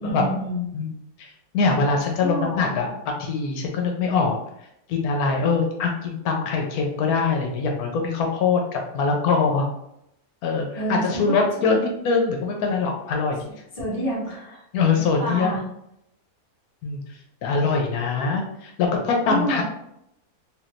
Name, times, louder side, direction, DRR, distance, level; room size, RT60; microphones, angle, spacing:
voice 1, 0.0-0.7 2.2-2.9 10.7-11.4 11.7-11.8 13.7-14.6 14.9-15.6 19.2-19.6, right 1 dB, 30° left, -6 dB, 1.0 m, -28 dB
voice 2, 0.7-1.3 1.5-4.4 4.9-9.7 10.4-13.4 14.7-15.5 16.8-17.0 17.4-19.6, left 4 dB, 80° left, 1 dB, 1.1 m, -23 dB
3.5 x 2.5 x 2.4 m, 0.79 s
omnidirectional pair, 1.6 m